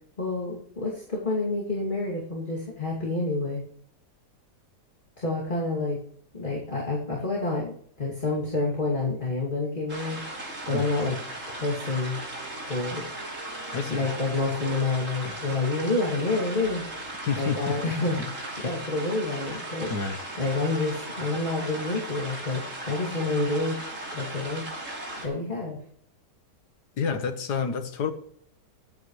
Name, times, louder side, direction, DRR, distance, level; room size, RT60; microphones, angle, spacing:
voice 1, 0.2-3.6 5.2-6.0 6.3-11.2 11.5-12.2 12.7-13.0 13.9-16.8 17.4-19.9 20.4-23.8 24.1-24.6 25.2-25.8, left 3 dB, 30° left, -4 dB, 2.8 m, -28 dB
sound 1, 9.9-25.3, right 2 dB, 50° right, 3.7 m, -37 dB
sound 2, 12.0-19.0, equal, 25° right, 3.6 m, -49 dB
voice 2, 13.7-14.1 15.2-15.3 17.2-17.9 18.6-18.7 19.9-20.2 27.0-28.1, left 6 dB, 75° left, 8 dB, 1.9 m, -29 dB
23.0 x 9.0 x 3.2 m, 0.63 s
omnidirectional pair, 1.8 m